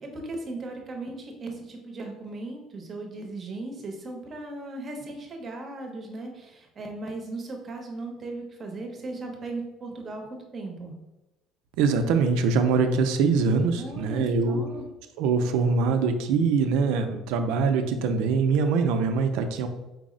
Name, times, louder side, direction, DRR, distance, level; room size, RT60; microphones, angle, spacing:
voice 1, 0.0-10.9 13.7-14.8, right 2 dB, 30° right, 2 dB, 0.7 m, -37 dB
voice 2, 11.8-14.6 15.2-19.7, right 5 dB, 85° right, 7 dB, 0.4 m, -23 dB
4.5 x 2.0 x 3.7 m, 1.0 s
cardioid pair, 150°, 0 cm